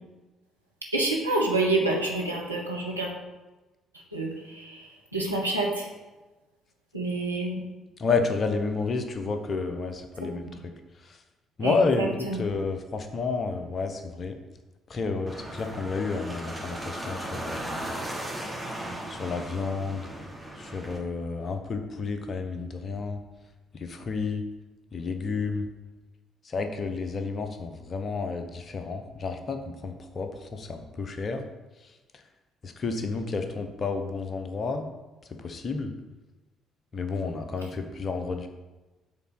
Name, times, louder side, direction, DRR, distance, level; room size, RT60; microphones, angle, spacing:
voice 1, 0.9-3.1 4.1-5.9 6.9-7.6 10.5-10.6 11.6-12.4, right 2 dB, 85° right, -2 dB, 1.0 m, -28 dB
voice 2, 8.0-10.7 11.0-11.2 11.6-14.4 14.9-17.9 18.8-20.1 20.5-23.2 23.7-24.4 24.9-25.7 26.4-31.4 31.8-32.2 32.6-34.9 35.3-35.9 36.9-38.5, left 4 dB, 40° left, 6 dB, 0.9 m, -31 dB
sound 1, 15.3-21.0, right 1 dB, 15° right, 1.8 m, -36 dB
7.2 x 4.0 x 6.0 m, 1.1 s
figure-of-eight pair, 45°, 0 cm